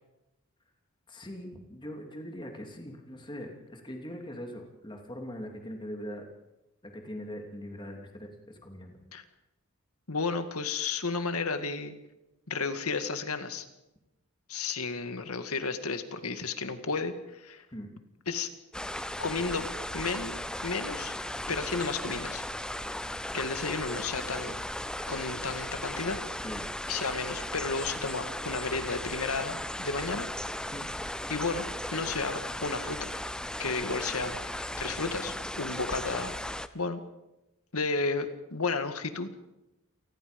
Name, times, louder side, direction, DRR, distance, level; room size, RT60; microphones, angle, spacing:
voice 1, 1.1-6.2 6.8-9.0 17.7-17.9 26.4-26.7 30.7-30.9, equal, 20° left, 2 dB, 3.0 m, -41 dB
voice 2, 10.1-11.9 12.5-13.7 14.5-17.7 18.3-18.5 19.2-19.7 19.9-20.4 20.6-21.1 21.5-22.4 23.3-24.5 25.1-26.2 26.9-30.3 31.3-31.7 31.9-33.1 33.6-36.4 36.7-37.0 37.7-39.3, left 4 dB, 85° left, 8 dB, 2.0 m, -32 dB
sound 1, 18.7-36.7, left 1 dB, 5° left, 0.6 m, -36 dB
28.5 x 19.5 x 5.3 m, 0.97 s
head